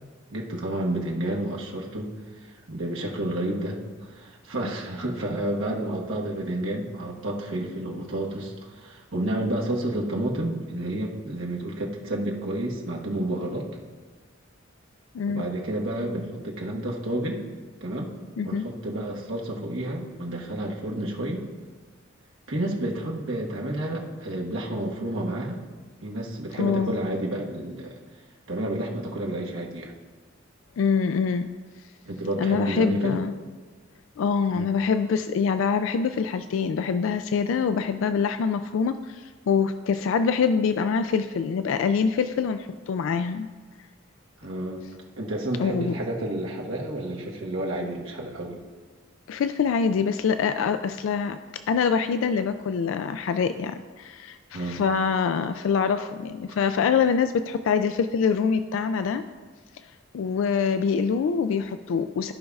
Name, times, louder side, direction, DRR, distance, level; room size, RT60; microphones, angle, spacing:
voice 1, 0.3-2.1 2.7-13.7 15.2-17.4 17.8-18.1 18.4-21.4 22.5-25.6 26.0-28.0 28.5-29.9 32.1-33.2 34.5-34.7 44.4-44.8 45.2-48.6 54.5-54.8, right 1 dB, 75° right, -1 dB, 1.3 m, -30 dB
voice 2, 15.1-15.5 18.4-18.7 26.6-27.0 30.8-31.5 32.4-33.3 34.2-43.5 45.6-45.9 49.3-59.2 60.1-62.3, left 6 dB, 75° left, 9 dB, 0.3 m, -25 dB
14.0 x 5.3 x 2.4 m, 1.5 s
head